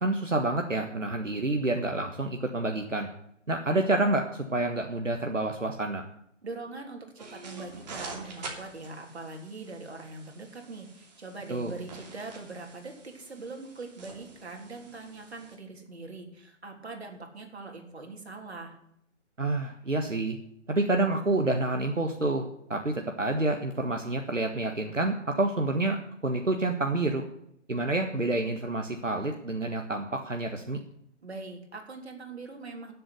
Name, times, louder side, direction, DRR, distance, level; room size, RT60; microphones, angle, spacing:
voice 1, 0.0-3.1 3.5-6.0 11.5-11.7 19.4-20.4 20.7-26.0 26.2-27.2 27.7-30.8, right 2 dB, 85° right, 4 dB, 1.6 m, -28 dB
voice 2, 6.4-18.8 31.2-32.9, right 3 dB, 60° right, 3 dB, 3.5 m, -42 dB
sound 1, 7.2-15.6, right 3 dB, 35° right, 2.9 m, -46 dB
13.0 x 7.8 x 8.1 m, 0.75 s
figure-of-eight pair, 140°, 37 cm